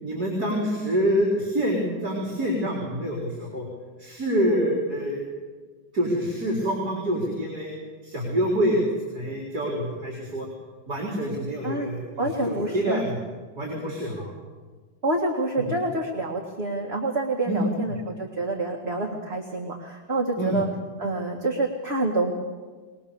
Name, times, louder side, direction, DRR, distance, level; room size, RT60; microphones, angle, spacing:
voice 1, 0.0-3.7 4.0-5.2 5.9-7.7 8.0-8.8 9.1-10.5 10.9-13.2 13.5-14.3 15.6-15.8 17.5-17.9 20.4-20.6, equal, 60° right, -2 dB, 4.7 m, -26 dB
voice 2, 12.2-13.0 15.0-20.7 21.0-22.3, right 2 dB, 35° right, 0 dB, 2.1 m, -27 dB
21.5 x 21.5 x 7.0 m, 1.4 s
omnidirectional pair, 1.9 m